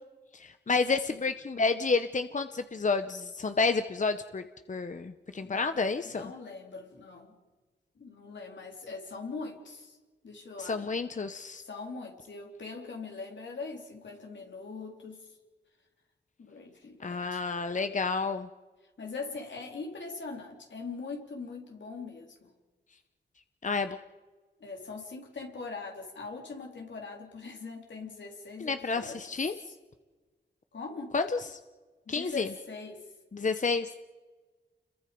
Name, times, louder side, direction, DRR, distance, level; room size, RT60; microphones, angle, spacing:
voice 1, 0.3-4.4 4.7-6.3 10.6-11.6 17.0-18.5 23.6-24.0 28.6-29.6 31.1-31.6 32.1-32.5 33.3-33.9, left 4 dB, 40° left, 9 dB, 0.9 m, -30 dB
voice 2, 5.4-7.4 8.0-10.0 10.2-10.9 11.6-15.3 16.4-17.4 19.0-22.5 24.6-29.5 30.7-31.2 32.1-33.0, left 4 dB, 80° left, 1 dB, 3.8 m, -42 dB
29.5 x 22.0 x 5.3 m, 1.3 s
wide cardioid pair, 90°, 19 cm